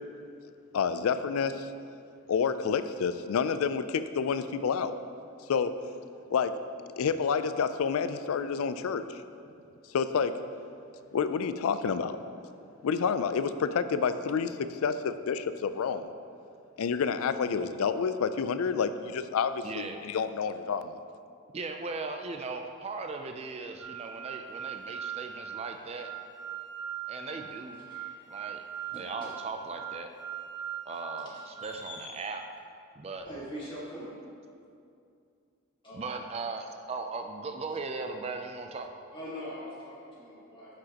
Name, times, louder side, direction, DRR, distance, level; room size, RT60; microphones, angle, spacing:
voice 1, 0.7-1.7 2.3-4.9 5.5-5.7 6.3-6.5 7.0-9.0 9.9-10.3 11.1-12.2 12.8-16.1 16.8-21.0, left 6 dB, 70° left, 11 dB, 0.3 m, -29 dB
voice 2, 19.6-20.0 21.5-26.1 27.1-27.8 28.3-28.6 29.0-30.1 30.9-32.4 33.0-33.3 35.9-38.9, right 3 dB, 25° right, 5 dB, 0.3 m, -38 dB
sound 1, 23.8-31.6, right 9 dB, 85° right, 1.8 m, -41 dB
voice 3, 28.8-29.4 31.2-32.3 33.2-34.2 35.8-36.0 39.1-40.8, equal, 20° left, -7 dB, 1.7 m, -43 dB
10.0 x 6.0 x 2.9 m, 2.4 s
head